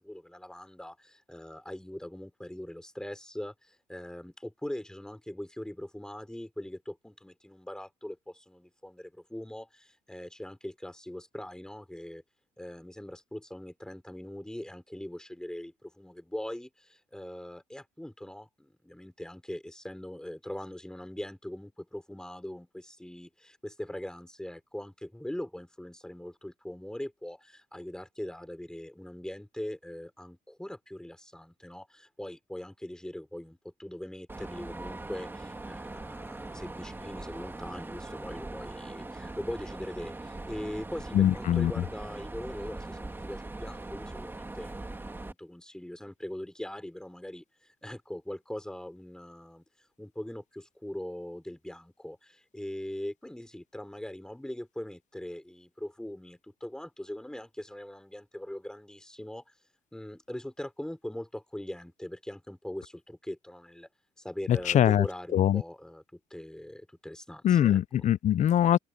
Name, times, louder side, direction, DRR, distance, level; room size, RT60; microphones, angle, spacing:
voice 1, 0.0-12.2 12.6-49.6 50.0-59.5 59.9-63.9 64.2-67.8, left 1 dB, 5° left, 5.3 m, -41 dB
Mechanisms, 34.3-45.3, right 2 dB, 10° right, 2.1 m, -41 dB
voice 2, 41.1-41.7 64.5-65.0 65.3-65.6 67.4-68.8, left 11 dB, 45° left, 0.5 m, -22 dB
open air
cardioid pair, 110°, 17 cm